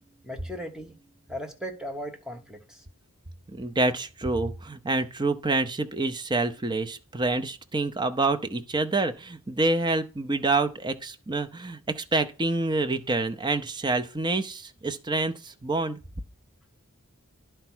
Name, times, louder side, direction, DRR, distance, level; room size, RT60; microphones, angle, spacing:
voice 1, 0.2-1.0 1.3-2.8, equal, 5° right, 1.0 m, -37 dB
voice 2, 3.5-16.0, right 2 dB, 20° right, 0.6 m, -27 dB
11.0 x 4.6 x 6.1 m
head